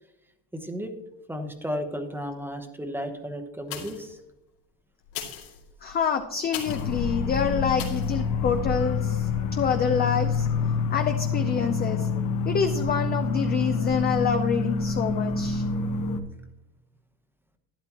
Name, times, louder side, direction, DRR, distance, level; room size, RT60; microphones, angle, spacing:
voice 1, 0.5-0.9 1.3-4.2, equal, 5° right, 7 dB, 0.8 m, -33 dB
sound 1, 3.6-4.2 5.0-7.0 7.8-8.2 8.7-8.8, left 9 dB, 85° left, 2.4 m, -38 dB
voice 2, 5.8-10.5 10.9-12.1 12.5-15.6, left 6 dB, 20° left, 6 dB, 0.4 m, -27 dB
sound 2, 6.7-16.2, left 4 dB, 40° left, 1.1 m, -27 dB
12.0 x 10.5 x 3.0 m, 0.91 s
cardioid pair, 140°, 48 cm